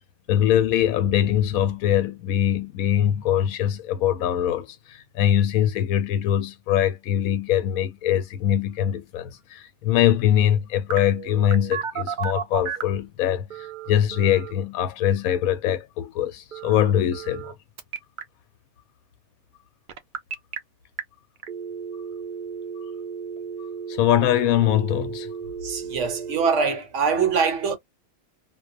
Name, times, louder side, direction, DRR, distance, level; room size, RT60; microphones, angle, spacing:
voice 1, 0.3-17.5 23.9-25.3, left 11 dB, 85° left, 1.0 m, -22 dB
Telephone, 10.9-13.0 13.5-14.5 16.5-17.5 17.8-18.2 19.9-20.6 21.0-21.1 21.4-26.5, right 7 dB, 90° right, 0.4 m, -34 dB
voice 2, 25.6-27.8, right 5 dB, 65° right, 0.9 m, -23 dB
2.4 x 2.1 x 2.4 m
omnidirectional pair, 1.5 m